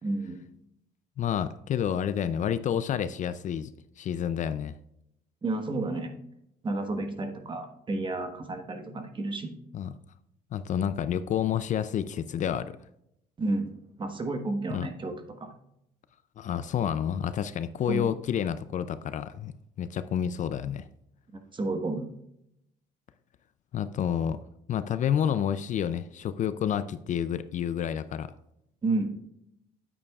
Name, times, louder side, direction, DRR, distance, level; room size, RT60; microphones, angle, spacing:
voice 1, 0.0-0.4 5.4-6.1 6.6-9.5 13.4-13.7 14.0-15.5 17.9-18.1 21.5-22.1 28.8-29.1, right 2 dB, 30° right, 6 dB, 1.2 m, -31 dB
voice 2, 1.2-3.7 4.0-4.7 9.7-9.9 10.5-12.8 14.7-14.9 16.4-20.9 23.7-24.4 24.7-28.3, left 9 dB, 45° left, 13 dB, 0.4 m, -29 dB
9.4 x 8.5 x 2.4 m, 0.78 s
cardioid pair, 110°, 17 cm